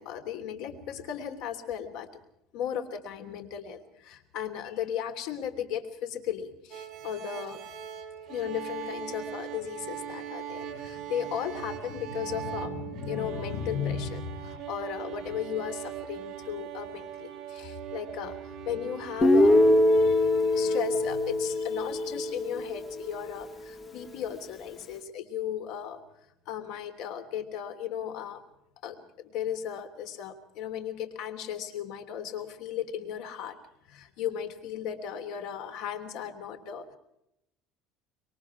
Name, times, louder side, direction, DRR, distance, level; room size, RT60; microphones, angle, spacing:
voice 1, 0.0-2.1 2.5-7.6 8.3-26.0 26.5-28.4 28.8-33.6 33.9-37.0, left 9 dB, 60° left, 6 dB, 3.1 m, -36 dB
sound 1, 6.7-19.8, right 10 dB, 35° right, 3.2 m, -40 dB
Guitar, 19.2-23.2, left 1 dB, 15° left, 1.1 m, -23 dB
26.0 x 23.0 x 4.8 m, 0.81 s
cardioid pair, 175°, 0 cm